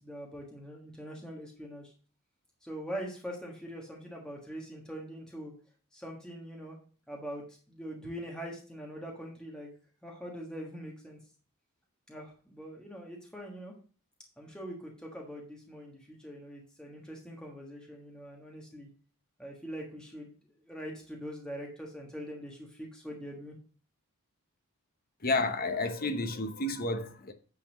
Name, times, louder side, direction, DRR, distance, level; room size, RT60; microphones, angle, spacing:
voice 1, 0.0-1.9 2.6-5.5 5.9-6.8 7.1-9.7 10.0-11.2 12.1-13.7 14.4-18.9 19.4-20.3 20.7-23.6, equal, 5° left, 1.4 m, -43 dB
voice 2, 25.2-27.3, left 2 dB, 40° left, 1.0 m, -31 dB
8.9 x 4.2 x 6.3 m
head